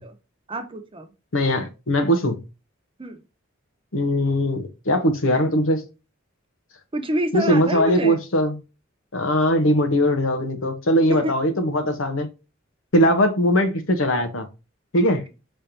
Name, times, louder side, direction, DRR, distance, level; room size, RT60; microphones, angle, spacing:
voice 1, 0.5-1.1 3.0-3.2 6.9-8.2 11.1-11.3, right 1 dB, 25° right, 0.8 m, -27 dB
voice 2, 1.3-2.4 3.9-5.9 7.3-8.6 9.1-12.3 12.9-14.5 14.9-15.2, equal, 85° left, 1.1 m, -20 dB
5.1 x 3.3 x 2.8 m
head